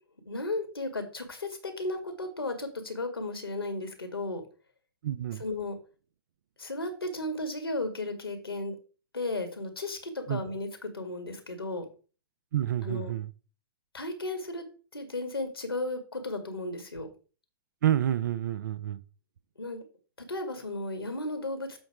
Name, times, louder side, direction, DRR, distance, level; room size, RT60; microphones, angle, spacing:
voice 1, 0.3-4.4 5.3-5.8 6.6-8.8 9.1-11.8 12.8-13.1 13.9-14.6 14.9-17.1 19.6-19.8 20.3-21.7, left 2 dB, 80° left, 1.9 m, -34 dB
voice 2, 5.0-5.4 10.3-10.4 12.5-13.3 17.8-19.0, right 11 dB, 50° right, 0.6 m, -28 dB
7.8 x 4.2 x 4.8 m
figure-of-eight pair, 110°, 12 cm